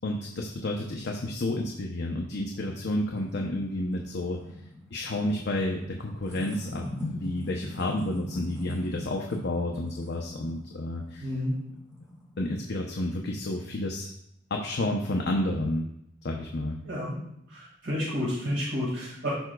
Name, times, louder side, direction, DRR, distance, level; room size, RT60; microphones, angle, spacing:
voice 1, 0.0-4.4 4.9-6.8 7.1-11.3 12.4-14.1 14.5-15.9 16.2-16.8, left 1 dB, 60° left, 1 dB, 0.7 m, -30 dB
sound 1, 2.5-12.6, left 1 dB, 5° right, 2.0 m, -41 dB
voice 2, 11.2-11.5 16.8-17.2 17.5-19.3, equal, 65° right, -6 dB, 2.0 m, -30 dB
12.0 x 4.9 x 2.3 m, 0.75 s
head